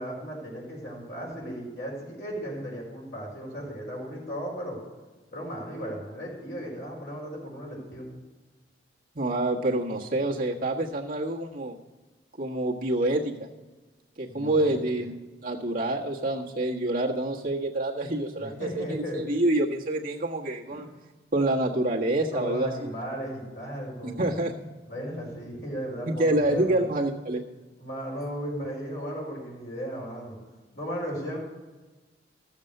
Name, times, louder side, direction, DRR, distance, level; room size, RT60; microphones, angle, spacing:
voice 1, 0.0-4.8 5.3-8.1 14.3-15.1 18.4-19.2 20.7-20.8 22.3-24.3 24.9-26.9 27.8-30.4 30.7-31.4, equal, 60° left, -2 dB, 4.7 m, -36 dB
voice 2, 9.1-11.8 12.4-13.5 14.2-15.1 15.4-20.9 21.3-22.9 24.0-24.5 26.1-27.4, right 1 dB, 50° right, -2 dB, 1.5 m, -27 dB
14.0 x 7.3 x 6.6 m, 1.2 s
head